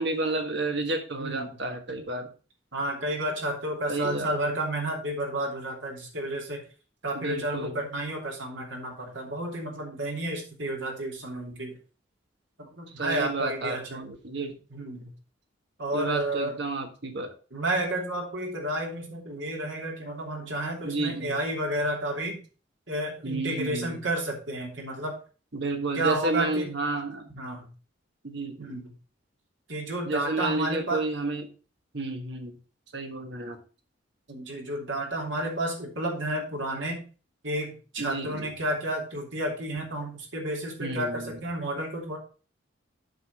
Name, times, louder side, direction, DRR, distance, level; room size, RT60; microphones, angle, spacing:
voice 1, 0.0-2.3 3.9-4.3 7.1-7.9 12.9-14.6 15.9-17.3 20.8-21.4 23.2-24.0 25.5-27.3 28.2-28.8 30.0-31.5 31.9-32.6 32.9-33.6 38.0-38.5 40.8-41.4, right 2 dB, 65° right, 5 dB, 1.5 m, -31 dB
voice 2, 1.2-1.5 2.7-6.6 7.0-11.7 12.6-14.0 14.7-15.1 15.8-16.5 17.5-22.4 22.9-25.2 25.9-26.7 27.3-27.7 28.6-28.9 29.7-31.0 34.3-37.0 37.4-42.2, right 1 dB, 80° right, 0 dB, 3.0 m, -31 dB
8.1 x 5.4 x 5.2 m, 0.36 s
head